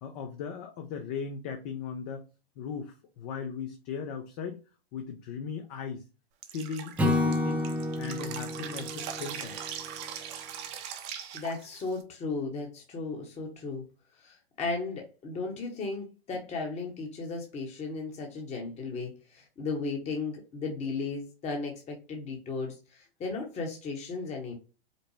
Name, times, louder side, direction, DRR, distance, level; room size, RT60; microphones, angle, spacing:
voice 1, 0.0-2.2 2.6-4.6 4.9-6.0 6.5-7.7 8.0-9.6, left 6 dB, 40° left, 0.6 m, -38 dB
Drip, 6.4-12.0, right 8 dB, 35° right, 0.8 m, -40 dB
Acoustic guitar / Strum, 7.0-10.3, left 2 dB, 5° right, 0.4 m, -30 dB
voice 2, 11.3-13.8 14.2-24.5, left 3 dB, 20° left, 1.0 m, -35 dB
5.1 x 2.1 x 3.1 m
hypercardioid pair, 115°, 31 cm